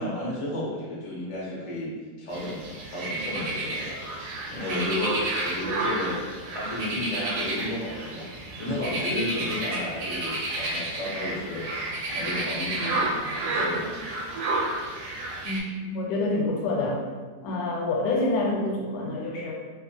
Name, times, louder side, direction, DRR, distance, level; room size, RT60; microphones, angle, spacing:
voice 1, 0.0-1.9 2.2-6.2 6.5-8.3 8.6-14.1, left 1 dB, 50° left, -6 dB, 0.3 m, -33 dB
sound 1, 2.3-15.6, right 2 dB, 75° right, 1.1 m, -31 dB
voice 2, 15.4-17.0 17.4-19.5, left 2 dB, 85° left, -2 dB, 1.2 m, -27 dB
2.7 x 2.5 x 2.5 m, 1.4 s
omnidirectional pair, 1.8 m